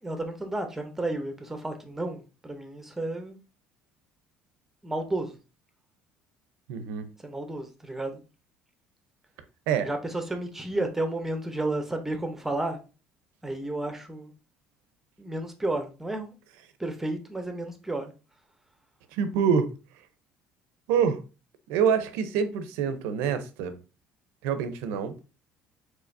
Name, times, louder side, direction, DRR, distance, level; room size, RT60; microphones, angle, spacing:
voice 1, 0.0-3.4 4.8-5.4 7.2-8.2 9.8-12.8 13.4-14.3 15.2-16.3 16.8-18.1, right 2 dB, 10° right, 0.8 m, -32 dB
voice 2, 6.7-7.1 9.7-9.9 19.1-19.7 20.9-21.2 21.7-23.8 24.4-25.2, right 7 dB, 85° right, 0.7 m, -26 dB
4.9 x 4.1 x 2.6 m
cardioid pair, 125°, 4 cm